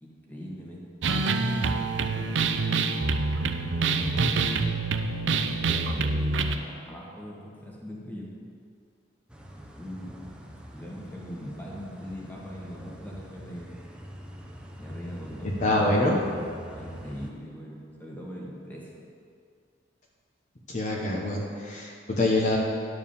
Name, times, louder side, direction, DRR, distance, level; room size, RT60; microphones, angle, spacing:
voice 1, 0.0-2.3 3.7-4.4 5.5-8.3 9.7-10.1 10.7-13.7 14.8-16.1 16.7-18.9, equal, 10° left, -4 dB, 1.6 m, -41 dB
sound 1, 1.0-6.6, right 4 dB, 85° right, 0.5 m, -26 dB
sound 2, 9.3-17.3, equal, 5° right, 0.7 m, -44 dB
voice 2, 15.6-16.3 20.7-22.6, left 2 dB, 40° left, -3 dB, 1.0 m, -25 dB
10.5 x 4.8 x 7.1 m, 2.3 s
head